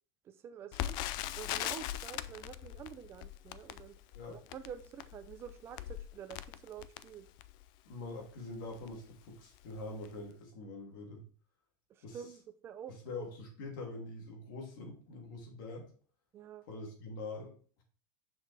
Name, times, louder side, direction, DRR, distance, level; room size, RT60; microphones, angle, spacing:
voice 1, 0.2-1.0 1.3-4.0 4.3-7.3 11.9-13.3 16.3-16.6, right 9 dB, 25° right, 9 dB, 0.5 m, -48 dB
Crackle, 0.7-7.7 8.3-8.4 8.7-8.9 9.5-9.8 10.0-10.1, left 13 dB, 40° left, 0.3 m, -41 dB
voice 2, 7.8-11.2 12.0-12.2 12.9-15.9 16.7-17.8, left 2 dB, 80° left, 1 dB, 2.8 m, -44 dB
6.9 x 5.9 x 3.4 m, 0.43 s
cardioid pair, 170°, 11 cm